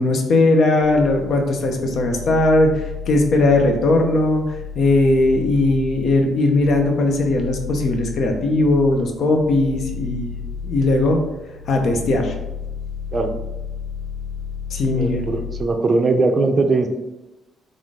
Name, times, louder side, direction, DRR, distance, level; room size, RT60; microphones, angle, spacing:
voice 1, 0.0-2.7 3.1-11.2 11.7-12.3 14.7-15.3, left 2 dB, 65° left, 3 dB, 0.6 m, -18 dB
sound 1, 0.8-15.6, left 5 dB, 90° right, 0.5 m, -33 dB
voice 2, 14.9-16.9, right 3 dB, 35° right, 5 dB, 0.5 m, -20 dB
3.6 x 2.5 x 3.6 m, 1.0 s
cardioid pair, 90°, 0 cm